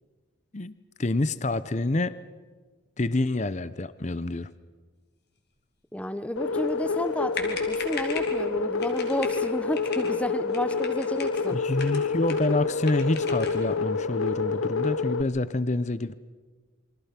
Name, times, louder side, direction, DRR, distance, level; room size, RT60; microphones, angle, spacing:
voice 1, 1.0-2.2 3.0-4.5 11.5-16.1, left 2 dB, 35° left, 15 dB, 0.7 m, -27 dB
voice 2, 5.9-11.6, equal, 5° left, 13 dB, 0.9 m, -31 dB
sound 1, 6.4-15.2, left 4 dB, 90° left, 0.8 m, -28 dB
sound 2, 7.1-7.2 7.3-8.4 8.8-9.4 9.7-10.1 10.5-11.4 11.8-12.5 12.8-13.6, left 5 dB, 50° left, 3.7 m, -38 dB
28.5 x 24.5 x 5.9 m, 1.4 s
head